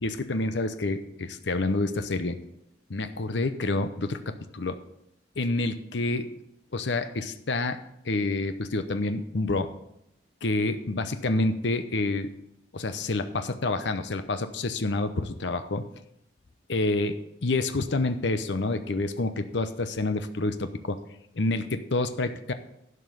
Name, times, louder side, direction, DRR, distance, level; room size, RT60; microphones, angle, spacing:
voice 1, 0.0-2.4 2.9-4.8 5.4-6.3 6.7-7.8 8.0-9.7 10.4-12.3 12.7-15.8 16.7-17.2 17.4-21.0 21.4-22.5, left 2 dB, 75° left, 9 dB, 0.8 m, -28 dB
11.5 x 5.4 x 7.8 m, 0.79 s
head